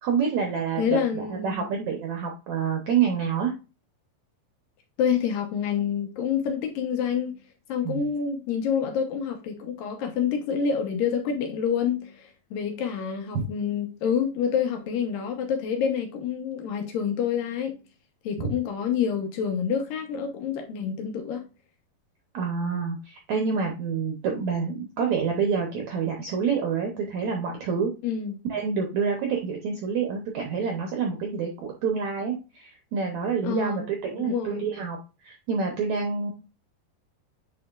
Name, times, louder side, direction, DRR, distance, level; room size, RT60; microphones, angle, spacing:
voice 1, 0.0-3.5 7.8-8.1 22.3-27.9 28.5-36.3, right 6 dB, 75° right, 1.7 m, -27 dB
voice 2, 0.8-1.7 5.0-7.4 7.7-17.8 18.2-21.4 28.0-28.3 33.4-34.7, left 7 dB, 70° left, 2.5 m, -27 dB
8.3 x 5.0 x 2.4 m
omnidirectional pair, 4.5 m